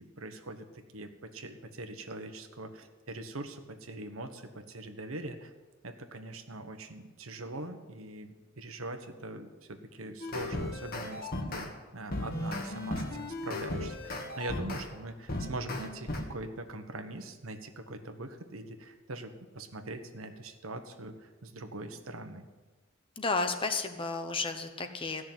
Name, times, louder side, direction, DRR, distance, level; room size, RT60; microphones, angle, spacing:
voice 1, 0.0-5.5 5.8-22.5, right 2 dB, 85° right, 7 dB, 1.3 m, -42 dB
sound 1, 10.2-11.7 12.1-14.9 15.3-16.2, left 1 dB, 45° left, 1.6 m, -36 dB
voice 2, 23.2-25.2, left 3 dB, 25° left, 7 dB, 1.0 m, -32 dB
15.5 x 6.4 x 9.2 m, 1.3 s
head